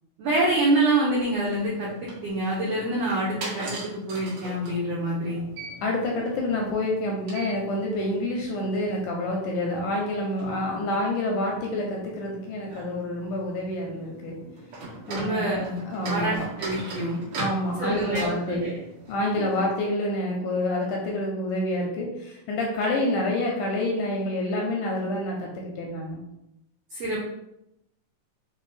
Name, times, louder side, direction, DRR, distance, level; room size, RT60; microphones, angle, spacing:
voice 1, 0.2-5.4 15.1-15.7 16.1-17.2 17.8-18.7 26.9-27.2, right 2 dB, 90° right, -5 dB, 1.4 m, -26 dB
sound 1, 1.7-19.7, right 2 dB, 65° right, 2.7 m, -41 dB
voice 2, 5.8-14.4 15.1-16.3 17.4-18.7 19.1-26.2, left 1 dB, 80° left, 0 dB, 1.9 m, -28 dB
6.0 x 2.2 x 3.2 m, 0.84 s
omnidirectional pair, 4.0 m